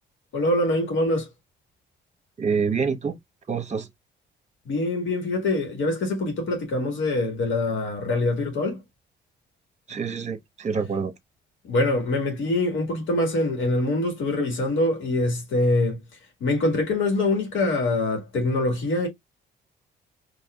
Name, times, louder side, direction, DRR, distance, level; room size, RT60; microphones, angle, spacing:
voice 1, 0.3-1.3 4.7-8.8 11.6-16.0 16.4-19.1, left 2 dB, 75° left, 1.9 m, -24 dB
voice 2, 2.4-3.2 3.5-3.9 9.9-11.1, right 5 dB, 35° right, 1.0 m, -26 dB
4.7 x 3.0 x 2.3 m
cardioid pair, 90°, 20 cm